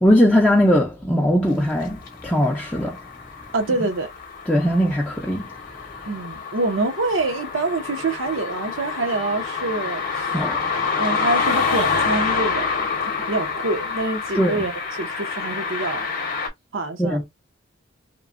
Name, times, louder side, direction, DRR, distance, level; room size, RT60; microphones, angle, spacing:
voice 1, 0.0-3.0 4.5-5.5 10.3-10.6 14.3-14.6 17.0-17.2, equal, 5° left, 0.4 m, -19 dB
sound 1, 1.8-16.5, left 5 dB, 45° left, 0.7 m, -27 dB
voice 2, 3.5-4.1 6.1-10.3 11.0-12.8 13.0-14.7 15.0-16.1 16.7-17.2, right 2 dB, 85° right, 0.7 m, -26 dB
3.0 x 2.1 x 2.4 m
head